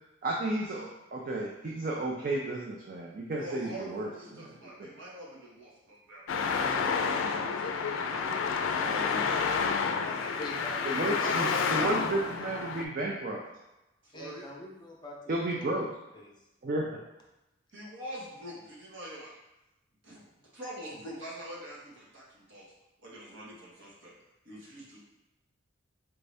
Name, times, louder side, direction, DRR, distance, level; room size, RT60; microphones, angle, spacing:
voice 1, 0.2-4.5 4.8-4.9 10.9-13.4 15.3-15.9 16.6-17.0, right 2 dB, 45° right, -1 dB, 0.4 m, -32 dB
voice 2, 3.4-6.9 7.4-10.4 11.1-12.5 14.0-14.4 17.7-19.3 20.0-20.2 20.5-22.6 23.0-24.1 24.4-25.0, right 1 dB, 70° right, -5 dB, 1.3 m, -44 dB
Traffic noise roadway noise, 6.3-12.8, left 5 dB, 80° left, 0.4 m, -29 dB
voice 3, 10.4-12.0 14.1-15.2 15.5-16.5, left 1 dB, 25° left, -2 dB, 0.6 m, -44 dB
4.4 x 2.6 x 3.3 m, 0.94 s
head